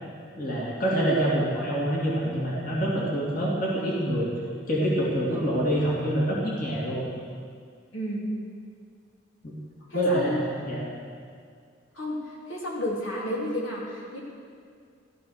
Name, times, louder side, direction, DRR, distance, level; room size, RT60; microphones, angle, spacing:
voice 1, 0.4-4.3 4.7-7.0 9.4-9.5 9.9-10.9, right 1 dB, 45° left, -5 dB, 2.7 m, -26 dB
voice 2, 7.9-8.3 9.9-10.4 11.9-14.2, left 1 dB, 75° left, -4 dB, 3.5 m, -32 dB
14.0 x 13.5 x 6.6 m, 2.2 s
head